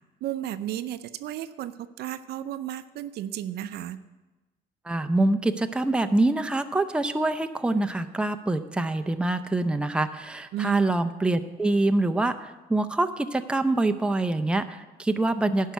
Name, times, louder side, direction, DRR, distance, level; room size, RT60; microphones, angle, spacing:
voice 1, 0.2-4.0 10.5-10.9, right 11 dB, 70° right, 12 dB, 0.5 m, -33 dB
voice 2, 4.8-15.7, right 2 dB, 5° right, 8 dB, 0.6 m, -25 dB
11.0 x 5.6 x 8.1 m, 1.1 s
cardioid pair, 110°, 17 cm